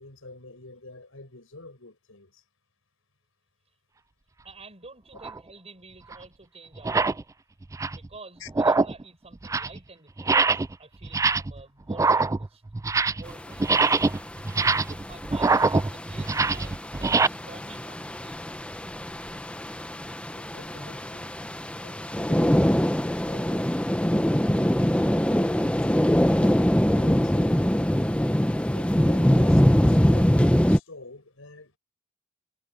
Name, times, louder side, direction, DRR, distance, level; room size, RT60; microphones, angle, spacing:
voice 1, 0.0-2.4 8.4-8.5 20.3-21.3 28.7-31.8, left 2 dB, 80° left, 6.0 m, -47 dB
voice 2, 4.4-7.2 7.9-12.6 13.0-14.3 14.8-19.2, right 3 dB, 30° right, 7.6 m, -49 dB
sound 1, 5.2-5.4 6.1-6.2 6.8-7.2 7.6-8.1 8.5-9.0 9.3-9.8 10.2-10.7 11.0-11.6 11.9-13.3 13.6-17.3, right 4 dB, 15° right, 0.3 m, -24 dB
sound 2, 13.3-30.8, equal, 5° left, 0.9 m, -24 dB
head